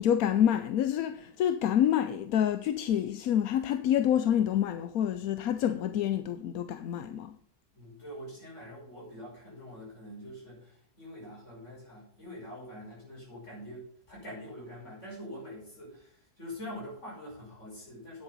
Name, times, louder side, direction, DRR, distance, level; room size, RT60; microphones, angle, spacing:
voice 1, 0.0-7.4, left 10 dB, 65° left, 1.0 m, -27 dB
voice 2, 7.7-18.2, equal, 45° left, 6.0 m, -45 dB
9.8 x 8.0 x 5.4 m
omnidirectional pair, 1.8 m